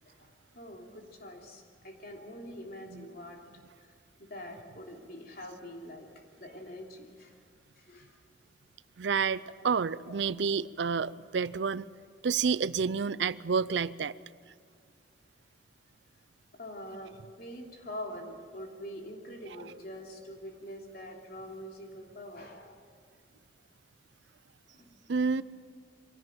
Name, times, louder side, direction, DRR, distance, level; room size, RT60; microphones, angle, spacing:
voice 1, 0.0-3.9 4.2-6.1 6.4-7.4 7.8-8.2 16.5-22.8 24.6-25.3, equal, 50° left, 3.1 m, -45 dB
voice 2, 9.0-11.9 12.2-14.1 25.1-25.4, right 5 dB, 70° right, 0.5 m, -29 dB
24.0 x 17.0 x 9.0 m
head